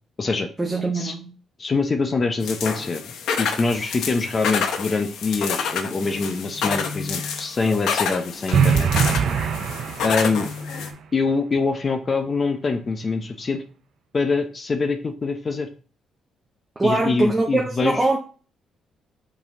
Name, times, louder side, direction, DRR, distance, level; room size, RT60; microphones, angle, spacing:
voice 1, 0.6-1.4 16.8-18.2, right 2 dB, 15° right, 1.0 m, -22 dB
voice 2, 1.6-8.9 10.0-10.5 11.1-13.6 14.1-15.7 16.8-18.0, left 4 dB, 35° left, 0.8 m, -24 dB
sound 1, 2.4-10.9, left 6 dB, 80° left, 0.9 m, -28 dB
sound 2, 8.5-10.6, right 7 dB, 65° right, 0.6 m, -22 dB
5.8 x 4.2 x 3.9 m
cardioid pair, 90°, 0 cm